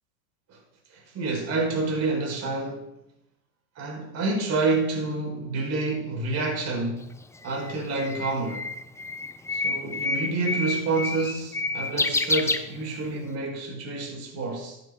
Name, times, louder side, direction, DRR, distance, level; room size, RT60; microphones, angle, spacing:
voice 1, 0.9-2.9 3.7-7.1 7.4-8.7 9.5-14.8, right 3 dB, 40° right, 4.6 m, -28 dB
Bird, 7.0-13.3, left 3 dB, 5° left, 0.6 m, -29 dB
14.0 x 9.2 x 3.7 m
hypercardioid pair, 105°, 41 cm